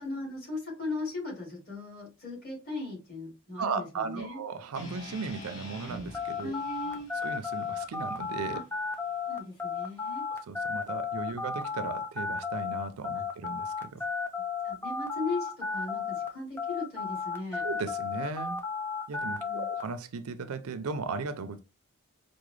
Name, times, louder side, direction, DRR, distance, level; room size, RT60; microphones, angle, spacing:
voice 1, 0.0-4.4 6.4-7.1 8.5-8.6 9.3-10.2 13.1-13.2 14.6-17.6 19.4-19.7, left 3 dB, 45° left, 2.3 m, -38 dB
voice 2, 3.6-6.5 7.2-8.6 10.5-14.1 17.6-18.6 19.1-21.6, right 4 dB, 85° right, 0.5 m, -36 dB
sound 1, 4.7-8.9, left 1 dB, 65° left, 1.3 m, -47 dB
sound 2, 6.1-16.3 16.6-19.8, left 5 dB, 10° left, 0.4 m, -33 dB
4.8 x 2.1 x 3.1 m
head